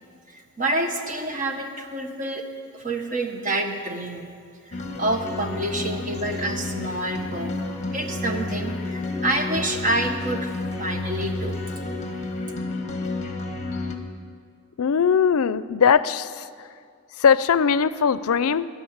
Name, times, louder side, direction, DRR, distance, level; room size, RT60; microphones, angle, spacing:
voice 1, 0.3-4.3 4.7-7.7 7.9-11.6, right 1 dB, 35° right, 4 dB, 1.3 m, -28 dB
sound 1, 4.7-13.9, left 2 dB, 30° left, 1.3 m, -30 dB
voice 2, 14.8-16.5 17.2-18.7, left 6 dB, 75° left, 16 dB, 0.5 m, -20 dB
15.5 x 10.5 x 8.7 m, 2.2 s
head